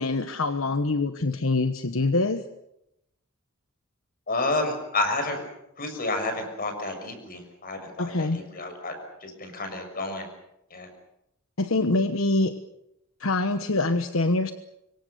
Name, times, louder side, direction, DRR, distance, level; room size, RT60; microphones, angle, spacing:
voice 1, 0.0-2.4 8.0-8.6 11.6-12.5 13.2-14.5, left 2 dB, 70° left, 9 dB, 1.2 m, -25 dB
voice 2, 4.3-5.4 5.8-8.9 9.2-10.3 10.7-10.9, left 2 dB, 45° left, 6 dB, 6.4 m, -30 dB
26.0 x 24.0 x 6.8 m, 0.83 s
head